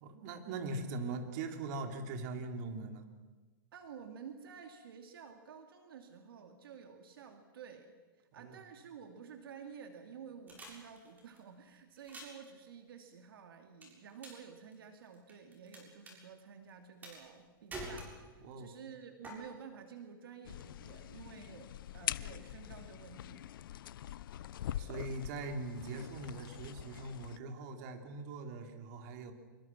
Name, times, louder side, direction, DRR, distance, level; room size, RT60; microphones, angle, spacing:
voice 1, 0.0-3.1 8.3-8.6 18.4-18.7 24.7-29.3, right 3 dB, 50° right, 5 dB, 3.5 m, -41 dB
voice 2, 3.7-23.6, right 6 dB, 75° right, 5 dB, 2.7 m, -51 dB
sound 1, 10.5-11.4 12.0-12.5 13.8-14.5 14.7-15.8 16.1-16.2 17.0-17.4 17.7-18.5 19.2-19.3, right 1 dB, 15° right, 7.1 m, -46 dB
sound 2, 20.4-27.4, left 12 dB, 70° left, 0.7 m, -43 dB
26.5 x 24.5 x 6.1 m, 1.3 s
hypercardioid pair, 140°, 12 cm